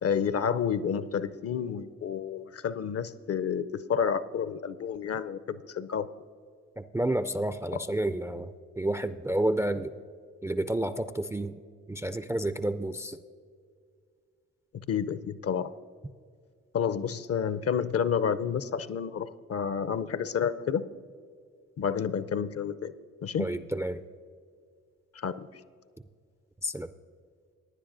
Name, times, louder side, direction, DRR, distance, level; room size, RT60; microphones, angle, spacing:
voice 1, 0.0-6.1 7.7-7.8 14.7-15.7 16.7-20.9 21.8-22.9 23.2-23.5 25.1-25.5, left 7 dB, 45° left, 15 dB, 0.6 m, -30 dB
voice 2, 6.8-9.9 10.4-11.5 11.9-13.2 23.4-24.0 26.6-26.9, right 1 dB, 10° right, 12 dB, 0.4 m, -30 dB
18.5 x 10.0 x 2.6 m, 2.1 s
hypercardioid pair, 45°, 35 cm